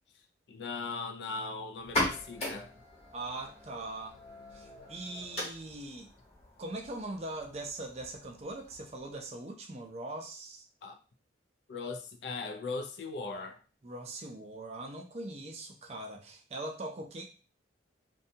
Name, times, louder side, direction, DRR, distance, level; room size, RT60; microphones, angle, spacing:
voice 1, 0.5-2.7 10.8-11.0 11.7-13.6, left 4 dB, 75° left, 0.4 m, -39 dB
sound 1, 1.8-9.2, left 1 dB, 35° left, 1.1 m, -39 dB
voice 2, 3.1-4.2 4.5-6.1 6.6-10.7 13.8-17.2, right 2 dB, 35° right, 0.4 m, -41 dB
2.6 x 2.2 x 2.6 m
head